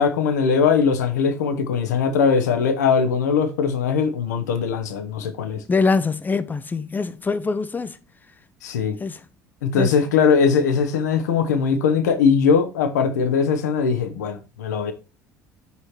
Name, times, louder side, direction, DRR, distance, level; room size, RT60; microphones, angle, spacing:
voice 1, 0.0-5.6 8.6-9.0 9.6-14.9, left 6 dB, 70° left, 1.0 m, -20 dB
voice 2, 5.7-8.0 9.0-9.2 9.7-9.9, left 4 dB, 20° left, 0.6 m, -23 dB
5.8 x 5.6 x 3.1 m
figure-of-eight pair, 60°, 9 cm